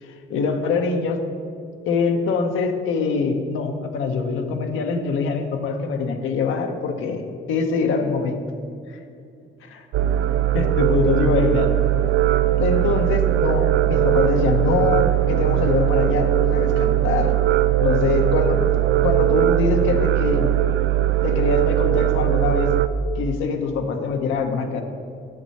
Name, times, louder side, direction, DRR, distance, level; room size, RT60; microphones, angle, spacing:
voice 1, 0.0-1.2 1.9-7.2 7.5-8.4 8.9-9.0 10.5-11.7 12.6-17.3 17.8-20.5 21.2-22.7 23.1-24.8, left 5 dB, 85° left, 5 dB, 0.9 m, -23 dB
sound 1, 9.9-22.9, right 14 dB, 75° right, 0.4 m, -20 dB
8.9 x 7.4 x 4.2 m, 2.5 s
cardioid pair, 90°, 20 cm